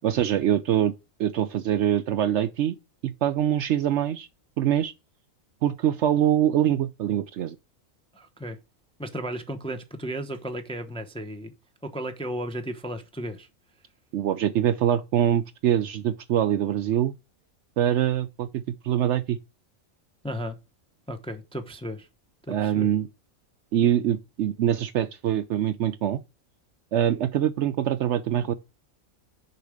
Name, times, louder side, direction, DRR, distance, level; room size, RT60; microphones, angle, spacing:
voice 1, 0.0-0.9 1.2-2.8 3.0-4.3 4.6-4.9 5.6-7.6 14.1-17.1 17.8-19.4 22.5-23.1 23.7-26.2 26.9-28.5, right 10 dB, 65° right, 0.8 m, -24 dB
voice 2, 8.1-8.6 9.0-11.5 11.8-13.5 20.2-20.6 21.1-22.1 22.5-22.9, right 1 dB, 5° left, 0.6 m, -34 dB
6.8 x 5.1 x 4.8 m
omnidirectional pair, 1.4 m